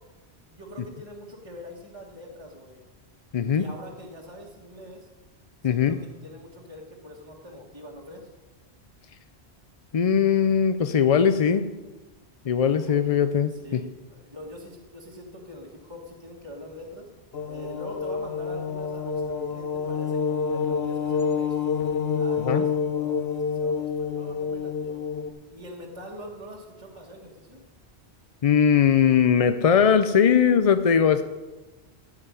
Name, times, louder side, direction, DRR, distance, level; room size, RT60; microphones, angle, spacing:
voice 1, 0.5-2.8 3.5-5.1 5.6-8.3 12.9-13.0 13.5-17.1 17.5-21.7 22.1-25.0 25.5-27.6, equal, 25° right, -3 dB, 1.7 m, -43 dB
voice 2, 3.3-3.6 5.6-6.0 9.9-11.7 12.4-13.8 22.5-22.6 28.4-31.2, left 7 dB, 50° left, 10 dB, 0.5 m, -20 dB
sound 1, 17.3-25.3, left 6 dB, 65° left, 1.1 m, -28 dB
14.0 x 5.7 x 9.6 m, 1.2 s
omnidirectional pair, 1.1 m